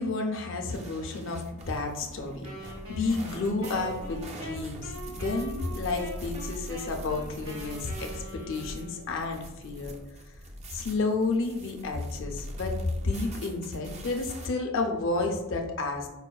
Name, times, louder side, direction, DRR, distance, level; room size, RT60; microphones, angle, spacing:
voice 1, 0.0-9.9 10.3-10.4 10.7-12.8 13.0-16.1, left 3 dB, 60° left, 3 dB, 0.5 m, -31 dB
sound 1, 0.7-14.5, right 1 dB, 30° right, 0.3 m, -42 dB
Wind instrument woodwind instrument, 2.4-9.3, right 1 dB, 75° right, 1.1 m, -43 dB
4.7 x 2.1 x 2.3 m, 1.1 s
head